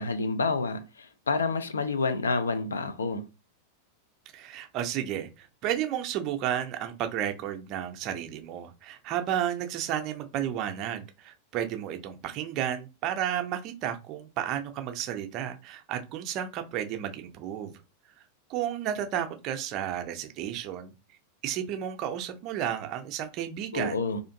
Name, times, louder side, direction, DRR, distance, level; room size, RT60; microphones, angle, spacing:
voice 1, 0.0-3.3 23.7-24.2, left 4 dB, 70° left, 0.3 m, -29 dB
voice 2, 4.3-17.7 18.5-20.9 21.4-24.0, right 10 dB, 40° right, 0.5 m, -32 dB
2.5 x 2.5 x 2.5 m
figure-of-eight pair, 90°, 0 cm